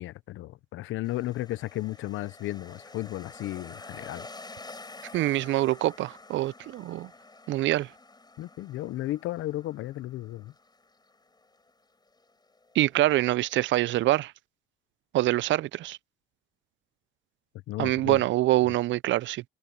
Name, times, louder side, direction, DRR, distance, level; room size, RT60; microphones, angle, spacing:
voice 1, 0.0-4.3 8.4-10.5 17.7-18.2, left 16 dB, 85° left, 0.7 m, -34 dB
sound 1, 1.0-14.2, left 3 dB, 20° left, 5.3 m, -49 dB
voice 2, 5.1-7.1 7.5-7.9 12.8-14.3 15.1-16.0 17.8-19.4, right 16 dB, 70° right, 0.4 m, -25 dB
cardioid pair, 90°, 20 cm